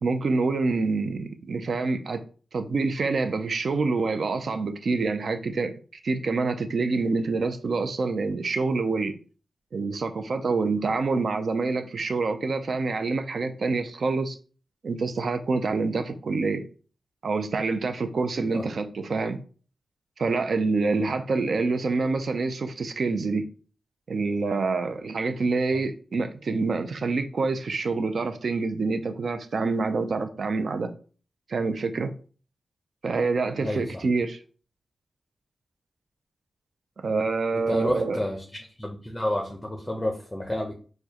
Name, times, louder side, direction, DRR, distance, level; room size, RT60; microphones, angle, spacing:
voice 1, 0.0-2.2 2.5-5.7 6.0-9.1 9.7-14.4 14.8-16.7 17.2-19.4 20.2-23.5 24.1-30.9 31.5-32.1 33.0-34.4 37.0-38.2, right 3 dB, 60° right, 0.4 m, -26 dB
voice 2, 37.5-38.4 38.8-40.7, left 1 dB, 10° left, 0.6 m, -30 dB
4.5 x 2.2 x 2.8 m
cardioid pair, 85°, 0 cm